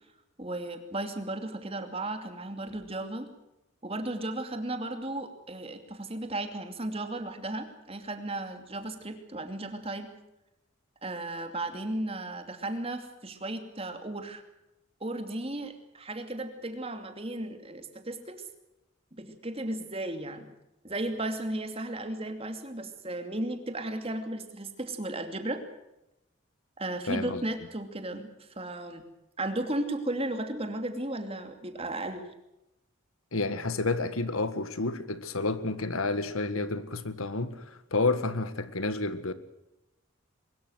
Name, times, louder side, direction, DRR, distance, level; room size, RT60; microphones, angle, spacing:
voice 1, 0.4-3.3 3.8-10.1 11.0-14.4 15.0-18.4 19.1-20.5 20.8-25.6 26.8-29.0 29.4-32.2, right 1 dB, 30° right, 7 dB, 2.7 m, -35 dB
voice 2, 27.1-27.4 33.3-39.3, left 3 dB, 85° left, 12 dB, 1.8 m, -30 dB
23.5 x 21.5 x 6.5 m, 0.90 s
head